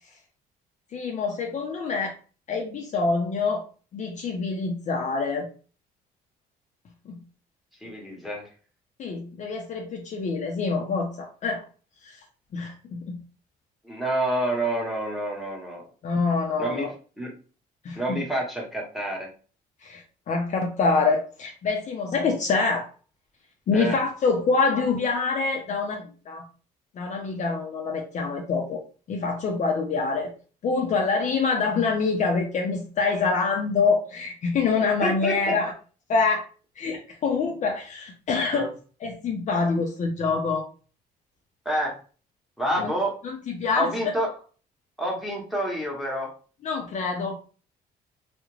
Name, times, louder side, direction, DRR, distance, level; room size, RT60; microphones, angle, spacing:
voice 1, 0.9-2.1 2.5-3.6 3.9-5.5 7.1-7.2 9.0-11.6 12.0-12.2 12.5-13.2 16.0-16.9 17.8-18.2 19.8-22.9 23.7-26.4 26.9-28.8 29.1-30.3 30.6-35.7 36.1-36.4 36.8-38.7 39.0-40.6 42.8-42.9 43.2-43.9 46.6-47.4, left 4 dB, 45° left, 2 dB, 0.5 m, -26 dB
voice 2, 7.8-8.5 13.8-15.8 16.6-16.9 17.2-17.3 18.0-19.3 23.7-24.0 35.0-35.6 38.5-38.7 41.6-41.9 42.6-43.1 43.7-44.3 45.0-46.3, right 1 dB, ahead, -2 dB, 0.9 m, -28 dB
2.3 x 2.1 x 3.1 m, 0.38 s
cardioid pair, 110°, 17 cm